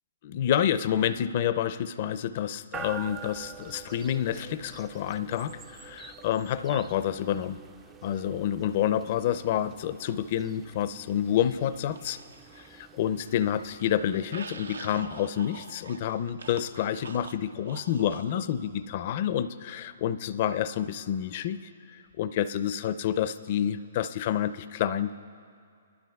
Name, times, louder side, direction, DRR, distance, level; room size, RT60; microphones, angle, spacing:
voice 1, 0.2-7.6 8.0-12.2 12.6-21.6 21.9-25.1, left 10 dB, 45° left, 13 dB, 0.4 m, -28 dB
sound 1, 2.7-15.7, right 7 dB, 20° right, 0.3 m, -47 dB
sound 2, 11.4-12.8 13.1-18.4, right 4 dB, 85° right, 0.6 m, -46 dB
26.5 x 12.0 x 2.3 m, 2.2 s
hypercardioid pair, 140°, 0 cm